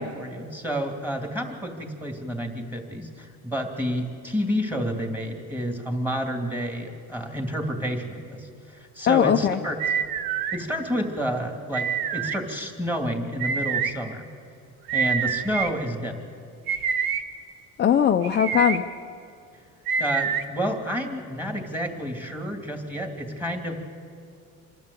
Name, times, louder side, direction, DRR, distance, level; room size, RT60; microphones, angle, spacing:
voice 1, 0.0-9.8 10.5-14.3 14.9-16.3 20.0-23.9, equal, 5° right, 4 dB, 2.6 m, -30 dB
voice 2, 9.1-9.6 17.8-18.8, left 9 dB, 30° left, 4 dB, 0.7 m, -20 dB
sound 1, 9.8-10.6 11.7-12.4 13.4-13.9 14.9-15.7 16.7-17.2 18.2-18.8 19.9-20.4, right 7 dB, 65° right, 1.3 m, -26 dB
26.5 x 12.0 x 8.3 m, 2.4 s
cardioid pair, 120°, 38 cm